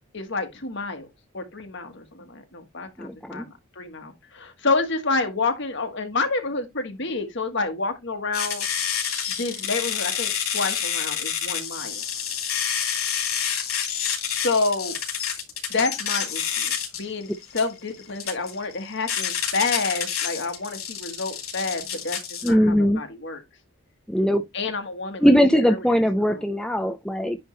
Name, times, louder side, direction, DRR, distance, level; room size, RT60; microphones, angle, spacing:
voice 1, 0.1-1.1 1.3-8.7 9.3-12.0 14.4-15.0 15.7-23.4 24.5-25.3 25.6-25.8 26.3-26.4, left 3 dB, 55° left, 1.5 m, -29 dB
voice 2, 3.0-3.5 22.4-23.0 24.1-24.4 25.2-27.4, equal, 5° left, 0.4 m, -20 dB
sound 1, 8.3-22.5, left 8 dB, 85° left, 3.1 m, -28 dB
9.8 x 3.5 x 3.2 m
head